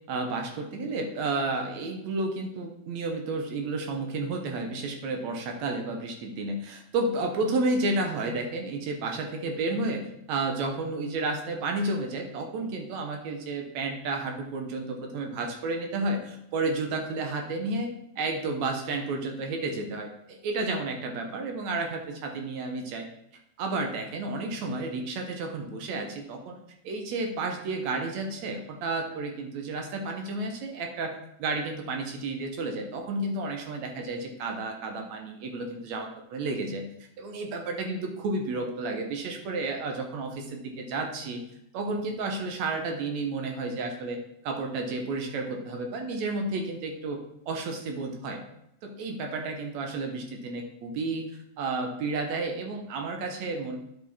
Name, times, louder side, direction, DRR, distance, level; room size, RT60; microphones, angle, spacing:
voice 1, 0.1-17.9 18.2-23.1 23.6-26.6 26.8-31.1 31.4-36.9 37.2-41.4 41.7-44.2 44.4-47.2 47.5-48.4 48.8-51.3 51.6-53.8, right 3 dB, 70° right, 3 dB, 2.1 m, -31 dB
10.0 x 5.3 x 4.1 m, 0.78 s
omnidirectional pair, 3.6 m